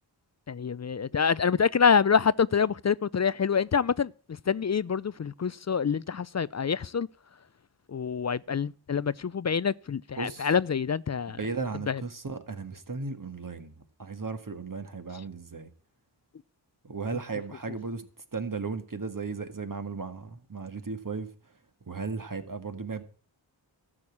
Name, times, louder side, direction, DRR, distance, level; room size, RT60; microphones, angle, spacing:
voice 1, 0.5-7.1 7.9-11.4 11.9-12.0, left 6 dB, 40° left, 0.5 m, -26 dB
voice 2, 10.2-10.5 11.3-13.7 14.0-15.7 16.9-18.0 18.3-21.3 21.9-23.0, right 4 dB, 45° right, 1.9 m, -35 dB
13.0 x 6.4 x 8.6 m
cardioid pair, 45°, 45 cm